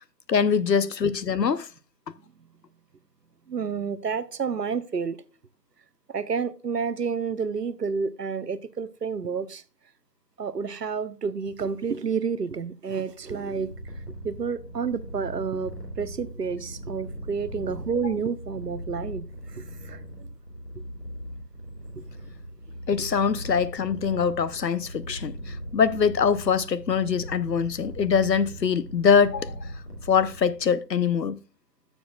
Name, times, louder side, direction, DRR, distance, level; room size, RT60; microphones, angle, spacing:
voice 1, 0.3-1.7 22.9-29.7 30.1-31.4, left 6 dB, 80° left, 0.8 m, -23 dB
voice 2, 3.5-5.2 6.1-9.6 10.4-13.7 14.2-19.2 19.6-20.0 22.0-22.1, right 5 dB, 75° right, 0.8 m, -30 dB
Purr, 13.1-30.8, equal, 40° left, 2.6 m, -39 dB
11.5 x 7.0 x 2.3 m
figure-of-eight pair, 180°, 49 cm